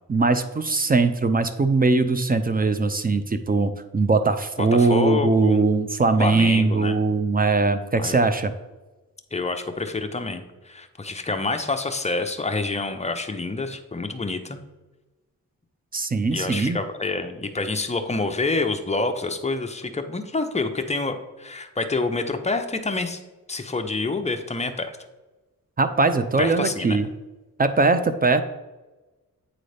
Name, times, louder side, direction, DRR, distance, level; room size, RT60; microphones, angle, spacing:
voice 1, 0.1-8.5 15.9-16.8 25.8-27.1 27.6-28.4, right 3 dB, 25° right, 9 dB, 0.4 m, -21 dB
voice 2, 4.6-5.6 6.2-7.0 8.0-8.2 9.3-14.6 16.3-23.2 23.5-25.0 26.4-27.0, left 3 dB, 20° left, 6 dB, 0.6 m, -27 dB
8.6 x 3.9 x 3.3 m, 1.1 s
cardioid pair, 80°, 35 cm